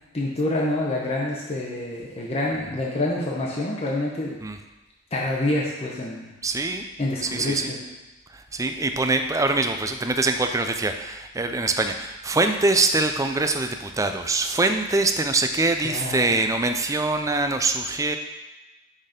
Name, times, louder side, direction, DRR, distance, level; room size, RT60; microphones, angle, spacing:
voice 1, 0.1-4.4 5.1-6.3 7.0-7.8 15.8-16.4, left 1 dB, 30° left, -4 dB, 0.9 m, -27 dB
voice 2, 6.4-6.8 7.3-7.7 8.5-18.2, right 3 dB, 15° right, 7 dB, 0.4 m, -23 dB
6.1 x 4.2 x 5.1 m, 1.1 s
head